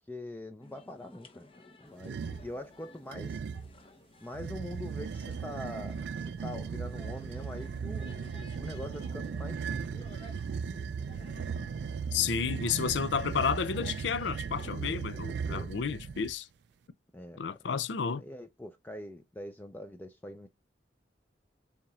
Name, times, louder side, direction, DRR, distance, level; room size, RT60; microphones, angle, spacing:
voice 1, 0.1-1.5 1.8-3.4 4.2-8.1 8.5-10.2 14.7-15.0 15.3-15.7 17.1-17.4 18.2-20.5, left 1 dB, 10° left, 0.5 m, -43 dB
sound 1, 0.6-14.7, left 2 dB, 30° left, 0.8 m, -55 dB
sound 2, 2.0-2.5 3.1-3.7 4.3-16.3, right 6 dB, 70° right, 0.3 m, -37 dB
voice 2, 12.1-16.5 17.4-18.2, left 6 dB, 85° left, 0.5 m, -31 dB
7.1 x 2.9 x 2.4 m
head